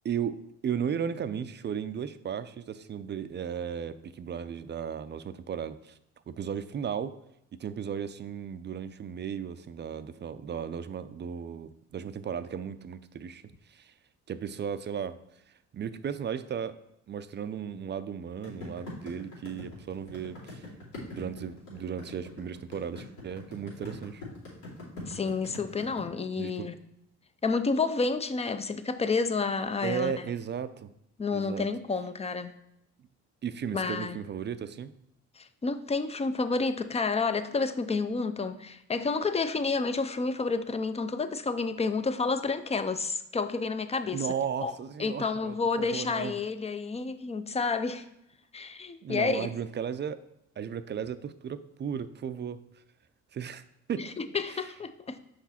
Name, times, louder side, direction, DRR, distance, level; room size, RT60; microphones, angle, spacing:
voice 1, 0.0-6.0 6.3-7.2 7.6-13.9 14.3-15.2 15.7-16.8 17.1-20.7 21.1-24.2 26.4-26.7 29.8-30.9 31.3-31.7 33.4-34.9 44.1-46.4 49.0-50.2 50.6-52.6 53.3-54.1 54.5-54.6, right 8 dB, 35° right, 12 dB, 0.4 m, -35 dB
sound 1, 18.4-26.0, left 2 dB, 85° left, 2.8 m, -43 dB
voice 2, 25.1-26.7 27.4-30.2 31.2-32.5 33.7-34.2 35.4-44.3 44.6-44.7 45.0-48.0 48.5-49.5 54.0-55.2, left 4 dB, 20° left, 11 dB, 0.5 m, -30 dB
6.0 x 5.0 x 4.2 m, 0.79 s
cardioid pair, 90°, 30 cm